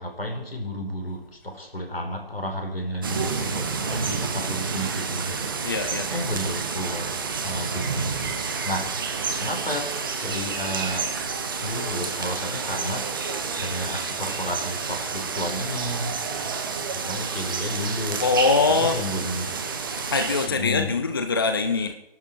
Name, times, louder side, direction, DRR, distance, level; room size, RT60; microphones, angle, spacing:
voice 1, 0.0-5.4 6.1-8.9 9.4-9.9 10.2-11.1 11.6-13.1 13.6-16.2 16.9-18.3 18.7-19.6 20.5-20.9, equal, 75° left, 3 dB, 4.7 m, -32 dB
sound 1, 3.0-20.5, right 5 dB, 20° right, 1.1 m, -29 dB
voice 2, 5.6-6.1 18.2-19.0 20.0-21.9, left 4 dB, 25° left, 7 dB, 0.7 m, -23 dB
24.5 x 12.0 x 4.6 m, 0.88 s
figure-of-eight pair, 155°, 30 cm